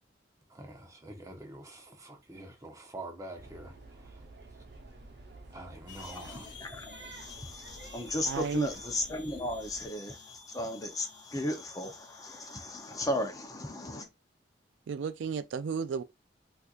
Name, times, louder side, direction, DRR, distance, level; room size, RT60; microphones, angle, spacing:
voice 1, 0.5-3.7 4.0-4.2 5.5-6.5, right 1 dB, 20° right, 0.7 m, -46 dB
sound 1, 3.3-9.9, right 2 dB, 65° right, 0.8 m, -50 dB
sound 2, 5.9-13.3, left 5 dB, 80° left, 0.7 m, -52 dB
voice 2, 6.0-14.1, left 1 dB, 20° left, 0.6 m, -36 dB
voice 3, 8.2-8.7 14.9-16.0, right 6 dB, 85° right, 0.3 m, -33 dB
4.3 x 2.5 x 2.4 m
head